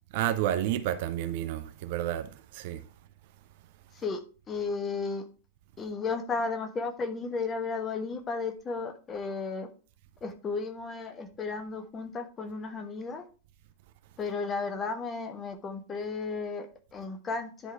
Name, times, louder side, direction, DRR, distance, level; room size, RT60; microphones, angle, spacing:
voice 1, 0.1-2.9, right 12 dB, 50° right, 0.7 m, -30 dB
voice 2, 4.5-5.2 5.8-9.7 10.2-13.2 14.2-17.7, left 4 dB, 25° left, 1.2 m, -34 dB
10.0 x 4.0 x 4.5 m
figure-of-eight pair, 90°, 0 cm